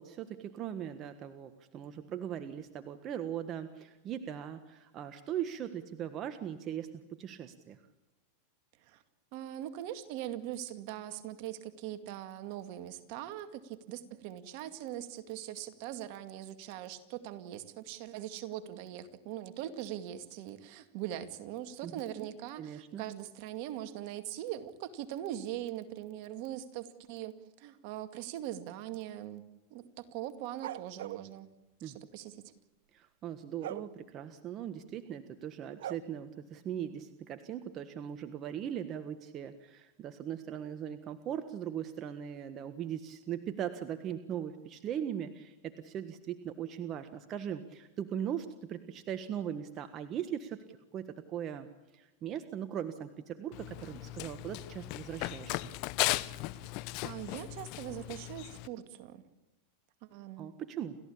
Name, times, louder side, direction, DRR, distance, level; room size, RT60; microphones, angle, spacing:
voice 1, 0.0-7.8 21.8-22.3 22.6-23.0 31.8-32.0 32.9-51.7 51.9-55.7 60.4-61.0, right 9 dB, 35° right, 9 dB, 1.5 m, -39 dB
voice 2, 9.3-29.4 29.7-31.5 31.8-32.4 56.6-56.7 57.0-59.2 60.0-60.5, right 12 dB, 55° right, 9 dB, 2.2 m, -41 dB
sound 1, 30.6-31.3 33.6-33.9 35.8-36.0, right 12 dB, 75° right, 0.9 m, -39 dB
Run, 53.5-58.7, left 20 dB, 55° left, 0.8 m, -37 dB
29.5 x 14.5 x 8.7 m, 1.1 s
hypercardioid pair, 115°, 0 cm